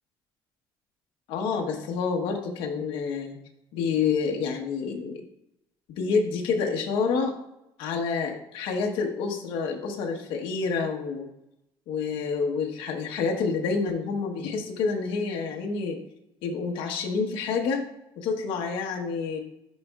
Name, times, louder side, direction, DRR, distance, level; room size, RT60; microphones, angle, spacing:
voice 1, 1.3-3.4 3.7-5.2 6.0-7.3 7.8-11.3 11.9-16.0 16.4-17.8 18.2-19.4, left 5 dB, 70° left, 1 dB, 1.2 m, -28 dB
11.0 x 4.1 x 2.4 m, 0.84 s
cardioid pair, 170°, 9 cm